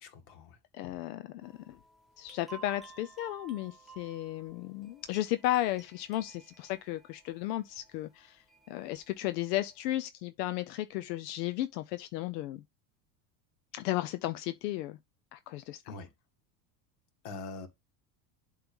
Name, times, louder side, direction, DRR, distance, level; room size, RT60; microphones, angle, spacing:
voice 1, 0.0-0.6 0.8-1.0 15.9-16.1 17.2-17.7, left 3 dB, 60° left, 2.1 m, -44 dB
voice 2, 0.7-1.8 2.2-12.6 13.7-15.0 15.3-15.9, left 15 dB, 90° left, 0.7 m, -34 dB
sound 1, 1.4-9.9, right 5 dB, ahead, 1.2 m, -55 dB
7.9 x 3.3 x 5.3 m
supercardioid pair, 115°, 47 cm